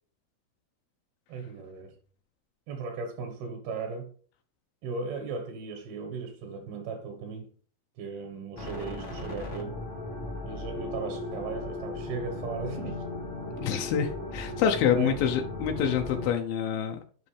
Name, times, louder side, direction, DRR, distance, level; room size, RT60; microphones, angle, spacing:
voice 1, 1.3-1.9 2.7-4.1 4.8-7.5 8.0-9.8 10.5-13.0 14.9-15.1, right 4 dB, 80° right, 3.2 m, -36 dB
sound 1, 8.6-16.3, left 2 dB, 45° left, 0.9 m, -37 dB
voice 2, 13.6-17.0, left 8 dB, 90° left, 2.7 m, -27 dB
10.5 x 5.3 x 3.3 m
omnidirectional pair, 4.3 m